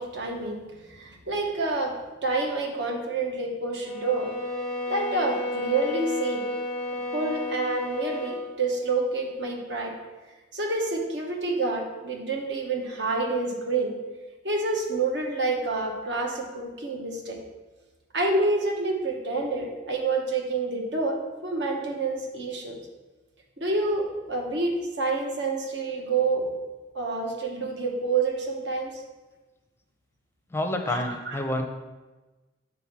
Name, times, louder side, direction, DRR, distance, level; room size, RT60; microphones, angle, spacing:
voice 1, 0.0-1.9 2.2-4.3 4.9-6.4 7.1-9.9 10.5-13.9 14.4-17.4 18.1-22.8 23.6-26.5 26.9-29.0 30.9-31.4, right 3 dB, 65° right, 1 dB, 1.2 m, -28 dB
sound 1, 3.8-8.5, left 2 dB, 20° right, 1.3 m, -32 dB
voice 2, 30.5-31.6, left 1 dB, 15° left, 5 dB, 0.5 m, -28 dB
5.6 x 4.1 x 6.0 m, 1.2 s
head